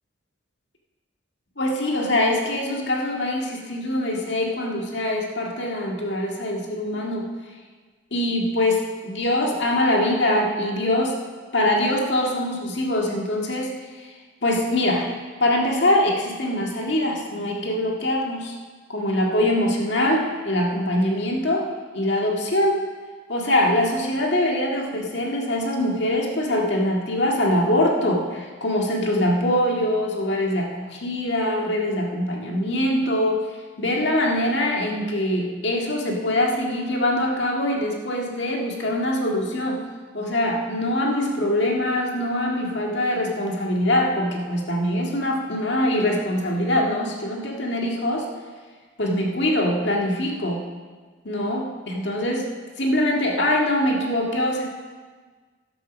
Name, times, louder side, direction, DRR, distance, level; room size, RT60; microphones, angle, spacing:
voice 1, 1.6-7.3 8.1-11.2 11.5-14.1 14.4-15.1 15.4-18.5 18.9-22.8 23.3-33.5 33.8-39.9 40.1-48.3 49.0-50.7 51.2-54.6, left 1 dB, 60° left, 0 dB, 1.9 m, -23 dB
11.0 x 8.6 x 6.2 m, 1.4 s
head